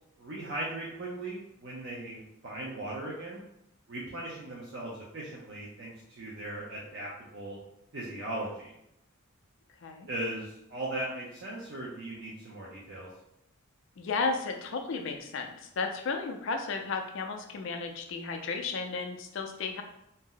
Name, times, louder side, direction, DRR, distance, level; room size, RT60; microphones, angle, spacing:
voice 1, 0.2-3.4 3.9-7.6 7.9-8.7 10.1-13.1, right 1 dB, 50° right, -5 dB, 0.5 m, -38 dB
voice 2, 14.0-19.8, left 4 dB, 55° left, 4 dB, 0.3 m, -34 dB
2.7 x 2.0 x 3.7 m, 0.79 s
head